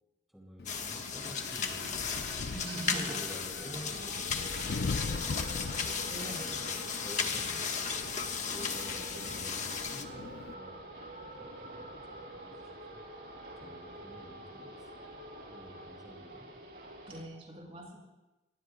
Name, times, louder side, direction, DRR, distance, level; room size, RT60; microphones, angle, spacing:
voice 1, 0.3-1.9 2.4-5.5 5.8-6.0 6.6-10.7 11.3-12.6 12.9-13.0 13.6-14.9 15.5-16.5, equal, ahead, -3 dB, 3.2 m, -50 dB
Wind, 0.6-10.5, left 4 dB, 60° left, 0.5 m, -41 dB
sound 1, 0.7-10.0, left 6 dB, 45° left, 1.4 m, -36 dB
sound 2, 0.9-17.2, right 1 dB, 75° right, 5.6 m, -47 dB
voice 2, 2.5-3.2 6.0-6.7 17.1-18.0, right 1 dB, 35° right, -2 dB, 6.2 m, -42 dB
28.0 x 22.0 x 2.3 m, 1.1 s
head